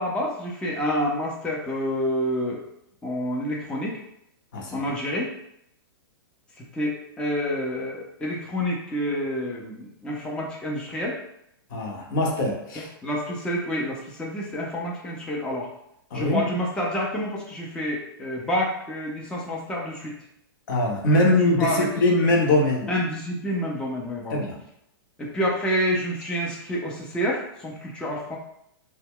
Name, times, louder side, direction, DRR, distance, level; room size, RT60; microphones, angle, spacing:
voice 1, 0.0-2.6 3.0-4.0 4.7-5.3 6.7-11.2 12.8-15.7 16.1-20.1 21.0-21.9 22.9-24.4 25.2-28.4, equal, 5° left, -3 dB, 0.5 m, -28 dB
voice 2, 11.7-12.9 16.1-16.4 20.7-22.9 24.3-24.6, left 2 dB, 55° left, 0 dB, 0.7 m, -22 dB
2.1 x 2.1 x 3.6 m, 0.75 s
hypercardioid pair, 110°, 13 cm